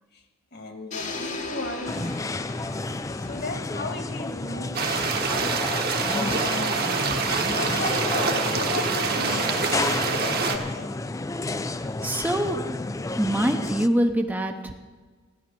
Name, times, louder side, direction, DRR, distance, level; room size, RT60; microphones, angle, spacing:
voice 1, 0.5-2.2 3.2-4.8 6.1-7.0 7.5-11.0 13.1-13.2, left 2 dB, 50° left, 6 dB, 1.7 m, -35 dB
sound 1, 0.9-4.9, left 3 dB, 35° left, 1.1 m, -38 dB
sound 2, 1.9-13.9, left 2 dB, 15° left, 0.3 m, -31 dB
sound 3, 4.7-10.6, right 4 dB, 50° right, 1.3 m, -26 dB
voice 2, 11.7-12.6 13.2-14.7, right 1 dB, 10° right, 4 dB, 0.7 m, -25 dB
14.5 x 10.0 x 6.8 m, 1.4 s
head